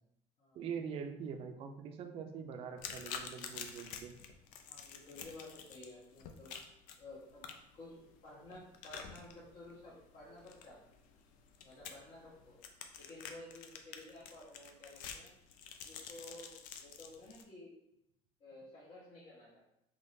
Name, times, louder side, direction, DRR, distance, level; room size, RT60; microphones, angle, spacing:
voice 1, 0.5-4.1, right 6 dB, 45° right, 5 dB, 0.4 m, -43 dB
sound 1, 2.8-17.4, left 7 dB, 75° left, 0.4 m, -49 dB
voice 2, 4.7-6.5 7.0-7.4 7.7-10.8 11.6-12.6 13.0-15.3 15.8-17.7 18.4-19.8, left 2 dB, 45° left, -8 dB, 1.2 m, -53 dB
3.6 x 3.2 x 2.6 m, 0.80 s
cardioid pair, 140°, 14 cm